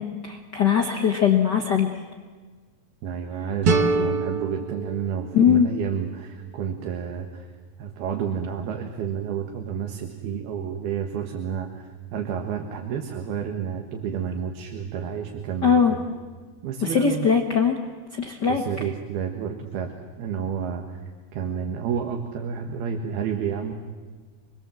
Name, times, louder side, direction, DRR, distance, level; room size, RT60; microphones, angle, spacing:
voice 1, 0.0-2.0 5.3-5.7 15.6-15.9 16.8-17.8 18.1-18.6, left 7 dB, 80° left, 2 dB, 0.9 m, -20 dB
voice 2, 3.0-7.5 7.8-16.0 16.6-17.3 18.4-21.0 21.3-23.7, right 7 dB, 85° right, 4 dB, 3.5 m, -30 dB
sound 1, 3.6-6.5, right 3 dB, 55° right, 1.6 m, -26 dB
28.0 x 21.5 x 7.6 m, 1.5 s
omnidirectional pair, 4.3 m